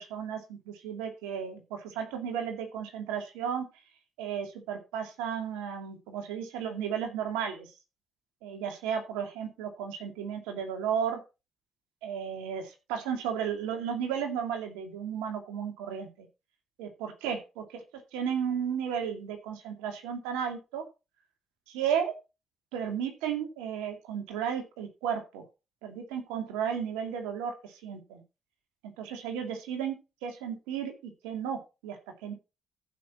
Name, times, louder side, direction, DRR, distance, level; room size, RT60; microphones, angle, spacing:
voice 1, 0.0-3.7 4.2-7.7 8.4-11.2 12.0-16.3 16.8-17.6 18.1-20.8 21.7-22.1 22.7-25.4 25.8-28.2 29.0-30.0 30.2-32.3, right 8 dB, 85° right, 5 dB, 2.4 m, -34 dB
14.5 x 6.0 x 4.4 m, 0.28 s
hypercardioid pair, 50°, 0 cm